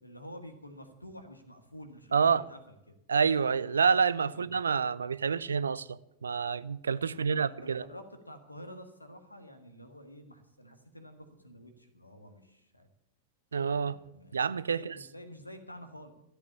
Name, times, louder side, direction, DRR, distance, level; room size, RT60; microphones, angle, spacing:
voice 1, 0.0-2.6 4.3-4.5 7.1-12.9 13.7-14.4 14.7-16.1, equal, 85° left, 1.7 m, -49 dB
voice 2, 2.1-2.4 3.1-7.8 13.5-14.0 14.3-14.9, right 6 dB, 70° right, 0.4 m, -28 dB
13.5 x 8.3 x 8.4 m
figure-of-eight pair, 90°, 0 cm